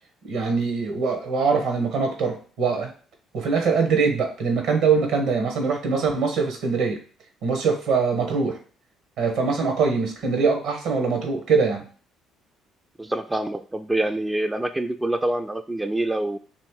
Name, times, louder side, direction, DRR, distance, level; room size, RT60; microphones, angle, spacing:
voice 1, 0.3-2.9 3.3-7.0 7.4-8.6 9.2-11.8, right 5 dB, 70° right, 3 dB, 1.1 m, -23 dB
voice 2, 13.0-16.4, right 1 dB, 15° right, 8 dB, 0.3 m, -26 dB
3.1 x 3.0 x 4.5 m, 0.41 s
hypercardioid pair, 50°, 0 cm